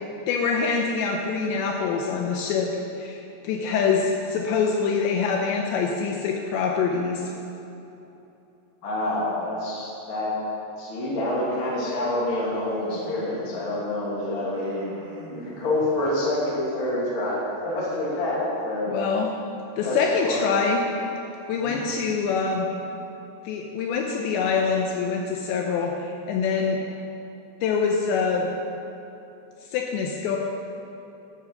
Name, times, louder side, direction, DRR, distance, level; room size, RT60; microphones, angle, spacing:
voice 1, 0.3-2.7 3.0-7.3 18.9-19.3 19.8-20.8 21.5-22.7 23.4-26.8 27.6-28.5 29.7-30.4, left 5 dB, 90° left, 1 dB, 2.5 m, -25 dB
voice 2, 8.8-10.3 10.8-14.8 15.3-18.9 19.7-20.0 20.2-20.6 21.5-21.8, left 1 dB, 35° left, -6 dB, 2.1 m, -27 dB
Human voice, 11.2-13.4 14.3-16.2, right 1 dB, 55° right, 2.6 m, -41 dB
11.0 x 7.5 x 6.4 m, 3.0 s
omnidirectional pair, 5.9 m